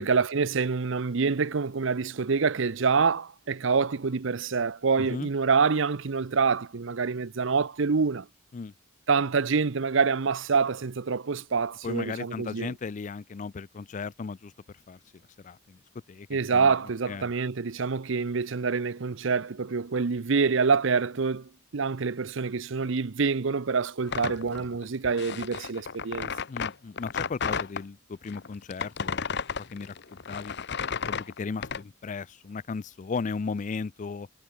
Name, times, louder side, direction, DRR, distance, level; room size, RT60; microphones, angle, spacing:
voice 1, 0.0-8.3 9.1-12.7 16.3-26.3, right 5 dB, 65° right, 0.7 m, -26 dB
voice 2, 5.0-5.3 8.5-8.7 11.8-14.5 14.9-15.0 15.4-15.8 16.1-16.7 17.1-17.3 26.5-29.3 29.6-30.5 31.1-34.3, left 4 dB, 35° left, 0.4 m, -36 dB
sound 1, 24.1-27.8 28.3-31.8, left 6 dB, 55° left, 1.0 m, -33 dB
head